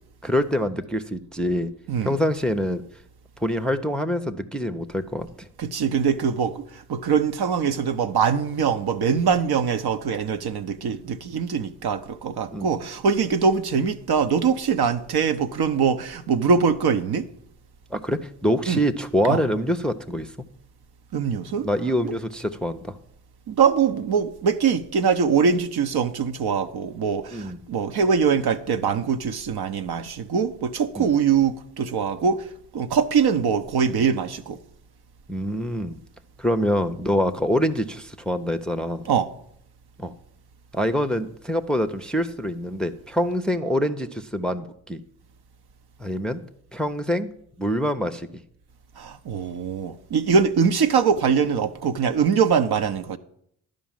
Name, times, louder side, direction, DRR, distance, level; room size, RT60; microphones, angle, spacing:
voice 1, 0.2-1.7 2.0-2.8 3.4-5.5 12.5-12.7 17.9-20.3 21.6-23.0 27.3-27.6 31.0-31.1 35.3-36.0 36.4-39.0 40.0-40.1 40.7-45.0 46.0-46.4 46.7-47.3 47.6-48.4, equal, ahead, 0.6 m, -25 dB
voice 2, 5.6-17.3 18.7-18.8 19.3-19.4 21.1-21.7 22.0-22.2 23.5-34.6 39.1-39.3 49.0-53.2, right 6 dB, 50° right, 0.8 m, -23 dB
11.0 x 5.2 x 7.3 m
hypercardioid pair, 40°, 49 cm